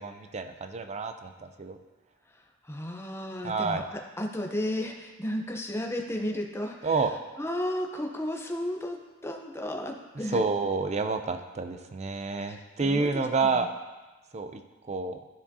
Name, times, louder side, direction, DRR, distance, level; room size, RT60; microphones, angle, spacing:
voice 1, 0.0-1.8 3.4-3.8 6.8-7.1 10.3-13.7 14.3-15.2, right 4 dB, 30° right, 8 dB, 0.5 m, -29 dB
voice 2, 2.6-7.0 7.4-10.4 12.4-13.6, left 1 dB, 10° left, 1 dB, 0.7 m, -34 dB
13.0 x 4.8 x 2.8 m, 1.2 s
head